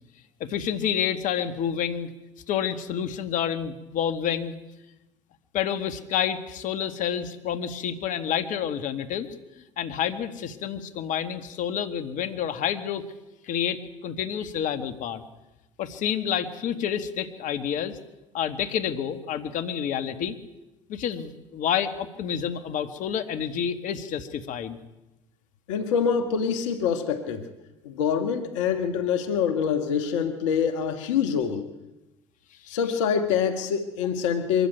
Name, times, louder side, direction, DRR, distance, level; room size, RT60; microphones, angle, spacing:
voice 1, 0.4-2.1 2.5-4.5 5.5-9.3 9.8-13.0 13.4-15.2 15.8-18.0 18.3-20.3 20.9-24.8 32.6-32.8, left 9 dB, 55° left, 9 dB, 1.8 m, -29 dB
voice 2, 25.7-27.5 27.8-31.7 32.7-34.7, left 7 dB, 80° left, 8 dB, 1.7 m, -25 dB
23.5 x 14.0 x 9.2 m, 1.0 s
hypercardioid pair, 75°, 16 cm